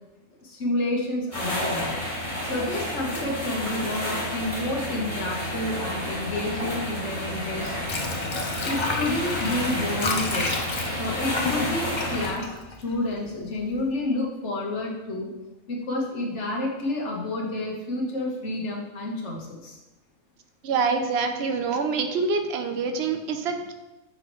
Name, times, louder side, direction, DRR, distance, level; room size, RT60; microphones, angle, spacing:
voice 1, 0.4-1.9 2.5-8.0 8.6-10.5 11.0-12.5 12.8-15.3 15.7-19.8, left 1 dB, 60° left, -1 dB, 1.5 m, -29 dB
sound 1, 1.3-12.3, left 1 dB, 25° left, 1.8 m, -30 dB
Water / Sink (filling or washing), 7.5-13.4 13.7-13.8, left 3 dB, 45° left, 0.3 m, -31 dB
voice 2, 20.6-23.7, right 4 dB, 60° right, 6 dB, 0.8 m, -26 dB
5.6 x 5.4 x 3.1 m, 1.1 s
omnidirectional pair, 1.3 m